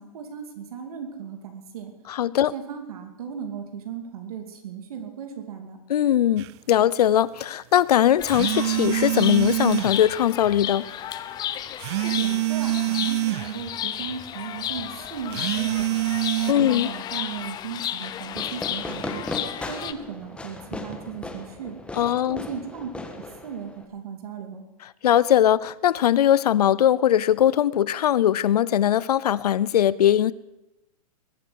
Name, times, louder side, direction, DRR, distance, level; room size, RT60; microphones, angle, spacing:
voice 1, 0.0-1.9 2.5-5.8 12.0-16.1 16.5-19.2 19.7-21.8 22.3-22.9 23.4-24.6, right 7 dB, 70° right, 2.9 m, -36 dB
voice 2, 2.1-2.5 5.9-10.9 16.5-16.9 22.0-22.4 25.0-30.3, left 11 dB, 85° left, 0.6 m, -20 dB
sound 1, 6.4-6.5 8.3-10.0 11.8-13.6 15.3-16.5, right 18 dB, 45° right, 0.5 m, -25 dB
Chirp tweet, 8.2-19.9, left 11 dB, 20° left, 0.6 m, -33 dB
Fireworks, 18.3-23.8, left 2 dB, 5° left, 1.5 m, -36 dB
21.0 x 7.5 x 8.1 m
hypercardioid pair, 140°, 19 cm